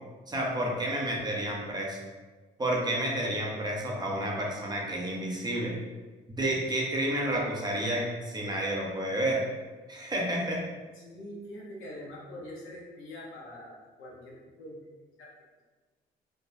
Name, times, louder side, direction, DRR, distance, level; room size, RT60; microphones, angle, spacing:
voice 1, 0.3-2.0 2.6-5.8 6.4-9.4 9.9-10.6, right 1 dB, 20° right, -2 dB, 0.6 m, -30 dB
voice 2, 11.0-14.8 15.2-15.3, left 1 dB, 85° left, -4 dB, 0.9 m, -44 dB
3.3 x 2.1 x 2.6 m, 1.3 s
cardioid pair, 90°, 20 cm